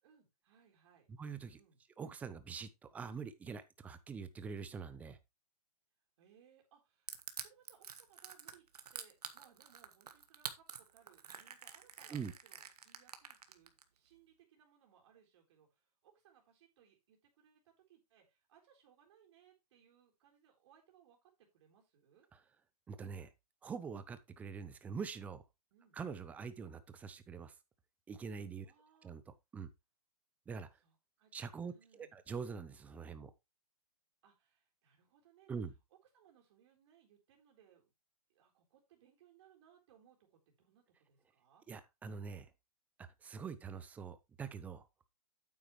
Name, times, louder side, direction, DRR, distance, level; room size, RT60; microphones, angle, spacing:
voice 1, 0.0-1.1 1.4-1.8 6.2-7.1 7.4-8.6 8.9-22.3 25.7-26.0 28.6-29.2 30.8-32.1 34.2-35.6 36.1-37.9 38.3-41.7, right 8 dB, 45° right, 3.8 m, -67 dB
voice 2, 1.2-1.6 2.0-5.2 12.1-12.3 22.9-23.3 23.6-25.4 25.9-27.5 28.1-28.7 29.0-29.7 30.5-30.7 31.3-33.3 35.5-35.7 41.7-42.5 43.2-44.9, right 6 dB, 5° right, 0.5 m, -44 dB
Crushing, 7.1-13.8, right 7 dB, 80° right, 1.6 m, -47 dB
9.0 x 8.4 x 3.1 m
hypercardioid pair, 155°, 20 cm